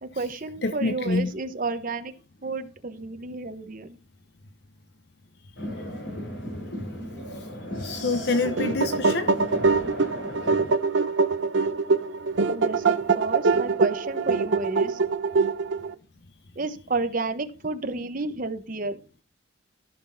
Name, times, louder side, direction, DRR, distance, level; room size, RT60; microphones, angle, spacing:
voice 1, 0.0-2.1 2.4-4.0 12.5-12.8 13.1-15.0 16.6-19.0, right 3 dB, 45° right, 1.0 m, -31 dB
voice 2, 0.6-1.3 7.8-9.3, left 3 dB, 60° left, 0.7 m, -26 dB
sound 1, 5.6-10.7, equal, 75° left, 3.6 m, -36 dB
sound 2, 8.3-15.9, right 4 dB, 70° right, 0.6 m, -24 dB
15.0 x 5.9 x 2.7 m
head